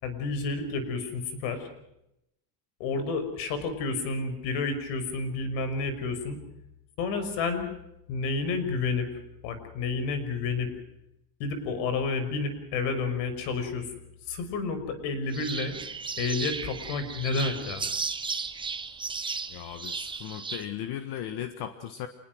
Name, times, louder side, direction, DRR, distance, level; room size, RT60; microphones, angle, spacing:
voice 1, 0.0-1.7 2.8-6.4 7.0-7.7 8.1-10.7 11.4-13.9 14.3-15.8 16.2-17.9, left 4 dB, 85° left, 10 dB, 6.0 m, -30 dB
sound 1, 15.3-20.6, right 5 dB, 10° right, 0.8 m, -35 dB
voice 2, 19.5-22.1, left 10 dB, 50° left, 9 dB, 1.6 m, -37 dB
27.5 x 20.5 x 6.3 m, 0.83 s
cardioid pair, 180°, 48 cm